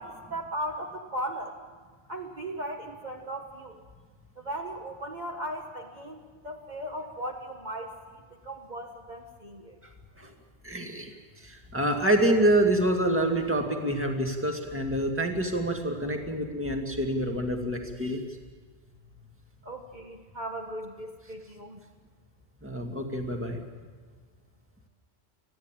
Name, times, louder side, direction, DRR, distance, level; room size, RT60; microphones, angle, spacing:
voice 1, 0.0-1.6 2.1-3.8 4.4-6.2 6.4-7.9 8.3-9.8 19.6-21.8, right 1 dB, 40° right, 1 dB, 1.5 m, -37 dB
voice 2, 10.6-11.1 11.4-18.2 22.6-23.6, right 1 dB, 10° right, 3 dB, 2.1 m, -27 dB
29.0 x 10.5 x 9.0 m, 1.5 s
omnidirectional pair, 1.2 m